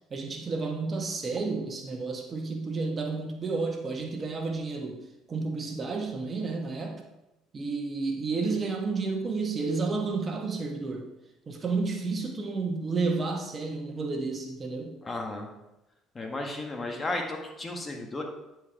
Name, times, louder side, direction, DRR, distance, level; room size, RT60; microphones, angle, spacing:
voice 1, 0.1-5.0 5.3-7.0 7.5-11.1 11.5-15.0, right 4 dB, 35° right, 2 dB, 1.5 m, -31 dB
voice 2, 15.0-15.5 16.2-18.2, left 2 dB, 25° left, 3 dB, 1.8 m, -34 dB
10.5 x 4.8 x 4.8 m, 0.94 s
hypercardioid pair, 55°, 0 cm